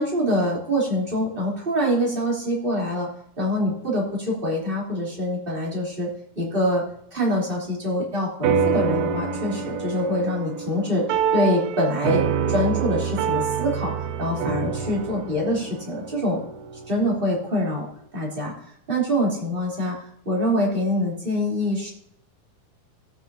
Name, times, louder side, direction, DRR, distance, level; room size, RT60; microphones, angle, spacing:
voice 1, 0.0-3.1 3.4-6.1 6.3-6.8 7.1-11.0 11.3-16.4 16.9-17.9 18.1-18.5 18.9-20.0 20.2-21.9, equal, 15° right, -4 dB, 2.7 m, -25 dB
sound 1, 8.4-17.2, right 7 dB, 85° right, 3.7 m, -26 dB
16.5 x 9.5 x 2.8 m, 0.69 s
omnidirectional pair, 5.8 m